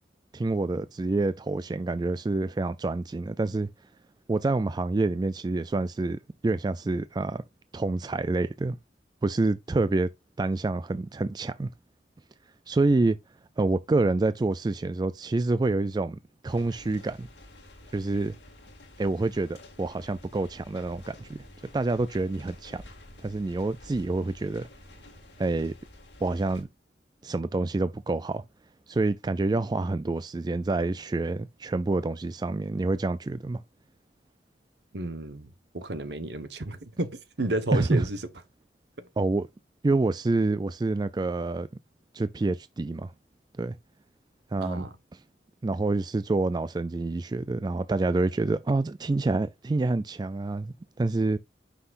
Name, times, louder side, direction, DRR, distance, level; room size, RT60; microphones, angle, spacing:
voice 1, 0.3-3.7 4.3-7.4 7.7-8.8 9.2-10.1 10.4-11.7 12.7-13.2 13.6-17.3 17.9-18.3 19.0-21.4 21.7-22.8 23.2-24.7 25.4-25.7 26.2-26.7 27.2-28.4 28.9-33.6 37.7-38.0 39.2-39.5 39.8-41.7 42.1-43.1 43.6-43.7 44.5-44.8 45.6-51.4, right 2 dB, 25° right, 0.3 m, -27 dB
sound 1, 16.5-26.6, left 1 dB, 75° left, 2.3 m, -50 dB
voice 2, 34.9-38.2 44.6-44.9, right 1 dB, 70° right, 1.2 m, -32 dB
9.6 x 5.8 x 2.6 m
head